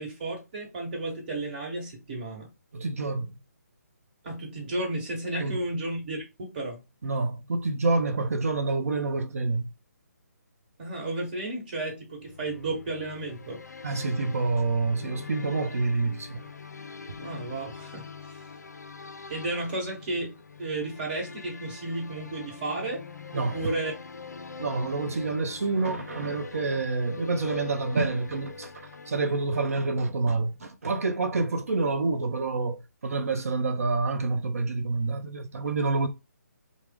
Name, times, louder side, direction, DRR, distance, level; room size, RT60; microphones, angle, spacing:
voice 1, 0.0-2.5 4.2-6.8 10.8-13.6 17.2-18.1 19.3-20.3 20.6-23.0 23.3-23.9, right 2 dB, 35° right, 1.2 m, -33 dB
voice 2, 2.7-3.4 5.4-5.6 7.0-9.7 13.8-16.5 17.1-17.2 23.3-23.8 24.6-28.7 29.1-36.1, right 3 dB, 60° right, 0.7 m, -28 dB
sound 1, 12.2-29.9, left 4 dB, 80° left, 0.4 m, -43 dB
3.3 x 2.1 x 3.4 m
figure-of-eight pair, 145°, 9 cm